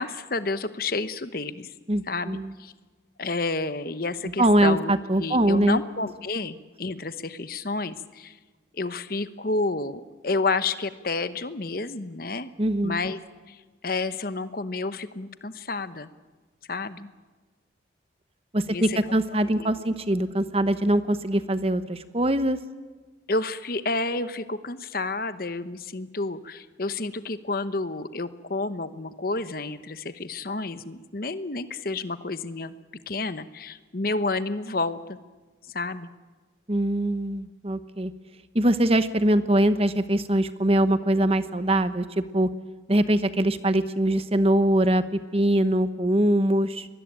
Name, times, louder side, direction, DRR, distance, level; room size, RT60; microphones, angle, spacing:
voice 1, 0.0-1.7 2.1-2.7 3.2-8.4 8.7-12.5 12.8-13.2 13.5-13.6 13.8-16.1 16.7-17.1 18.7-19.0 19.6-19.7 23.3-32.7 33.1-35.2 35.7-36.1, left 3 dB, 50° left, 12 dB, 1.0 m, -30 dB
voice 2, 1.9-2.5 4.2-5.8 12.6-13.0 18.5-22.6 36.7-38.1 38.5-42.5 42.9-46.9, right 1 dB, 30° right, 12 dB, 1.0 m, -23 dB
24.5 x 20.5 x 9.0 m, 1.3 s
head